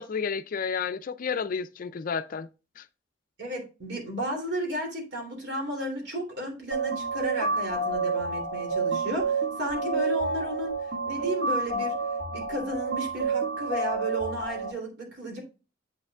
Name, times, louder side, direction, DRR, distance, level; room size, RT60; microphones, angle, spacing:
voice 1, 0.0-2.5 2.8-2.9, left 6 dB, 45° left, 0.4 m, -31 dB
voice 2, 3.4-10.7 11.0-12.0 12.3-15.4, equal, 65° right, 3.0 m, -33 dB
sound 1, 6.7-14.7, right 3 dB, 80° right, 2.0 m, -29 dB
7.8 x 6.6 x 2.4 m
head